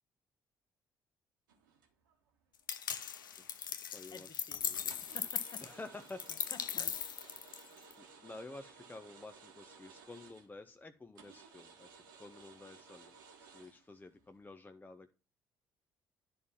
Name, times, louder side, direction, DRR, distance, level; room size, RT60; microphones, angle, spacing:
sound 1, 1.5-2.3 2.7-3.7 4.0-4.3 4.9-10.7 11.1-14.4, right 5 dB, 85° right, 1.3 m, -58 dB
sound 2, 2.7-7.9, left 9 dB, 90° left, 0.4 m, -39 dB
voice 1, 3.5-4.9 5.6-6.2 8.0-11.9 12.2-13.1 13.4-15.2, left 2 dB, 15° left, 8 dB, 0.7 m, -51 dB
voice 2, 4.1-4.7 5.1-5.6 6.3-6.4 6.7-6.9, left 5 dB, 40° left, 10 dB, 1.1 m, -51 dB
11.0 x 3.7 x 5.5 m, 0.33 s
hypercardioid pair, 50°, 10 cm